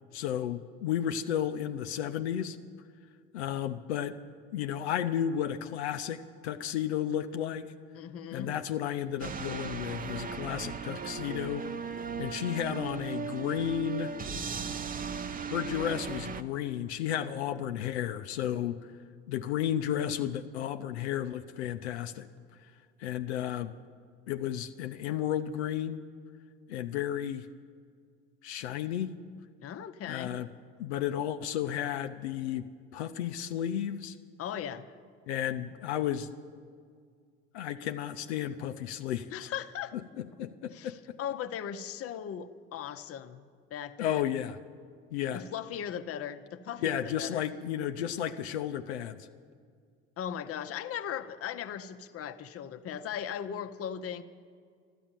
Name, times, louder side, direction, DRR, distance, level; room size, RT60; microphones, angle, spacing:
voice 1, 0.1-2.6 3.3-4.2 4.5-7.7 8.3-11.6 12.2-14.1 15.5-18.8 19.3-22.3 23.0-23.7 24.3-26.0 26.7-27.5 28.4-29.1 30.1-30.5 30.8-32.7 32.9-34.2 35.3-36.3 37.5-39.5 40.2-41.2 44.0-44.6 45.1-45.4 46.8-49.3, left 10 dB, 85° left, 7 dB, 0.7 m, -33 dB
voice 2, 7.9-8.5 29.6-30.4 34.4-34.9 39.3-40.0 40.7-43.4 43.7-44.3 45.3-47.4 50.2-54.2, left 9 dB, 45° left, 9 dB, 0.9 m, -38 dB
sound 1, 9.2-16.4, right 6 dB, 25° right, 0.7 m, -37 dB
13.0 x 12.0 x 8.9 m, 2.1 s
hypercardioid pair, 70°, 33 cm